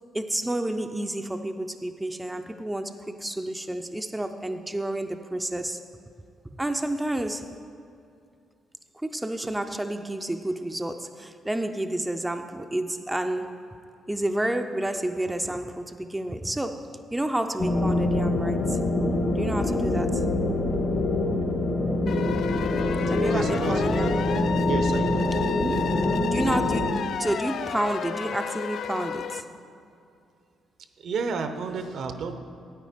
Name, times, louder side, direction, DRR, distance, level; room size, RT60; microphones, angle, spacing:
voice 1, 0.1-5.8 6.6-7.6 9.0-13.7 14.1-18.8 19.3-20.3 23.1-24.5 25.5-25.8 26.3-29.5, right 1 dB, 10° right, 0.5 m, -30 dB
sound 1, 17.6-26.9, left 2 dB, 45° left, 1.2 m, -25 dB
sound 2, 22.1-29.4, left 7 dB, 65° left, 0.3 m, -32 dB
voice 2, 23.2-24.2 24.6-25.4 31.0-32.4, right 5 dB, 65° right, 0.7 m, -31 dB
9.2 x 8.9 x 5.1 m
cardioid pair, 90°, 0 cm